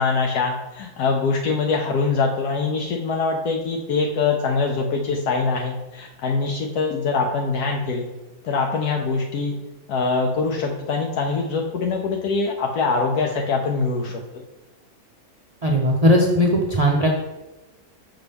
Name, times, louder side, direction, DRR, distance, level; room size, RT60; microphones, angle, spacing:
voice 1, 0.0-8.1 8.4-9.5 9.9-14.2, left 4 dB, 75° left, 1 dB, 1.1 m, -23 dB
voice 2, 15.6-17.1, equal, 60° right, -1 dB, 0.4 m, -18 dB
5.9 x 5.6 x 3.4 m, 1.1 s
omnidirectional pair, 1.6 m